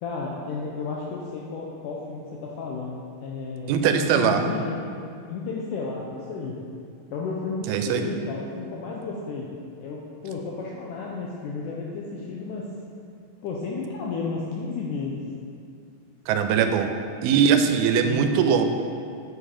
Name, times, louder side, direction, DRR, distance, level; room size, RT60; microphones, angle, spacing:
voice 1, 0.0-3.7 4.0-4.8 5.3-6.6 7.1-9.5 9.8-12.7 13.4-15.3 18.0-18.3, left 4 dB, 90° left, -3 dB, 1.8 m, -32 dB
voice 2, 3.7-4.4 7.7-8.1 16.3-16.9 17.2-18.7, right 7 dB, 90° right, 6 dB, 2.4 m, -21 dB
8.0 x 4.8 x 4.3 m, 2.4 s
omnidirectional pair, 4.3 m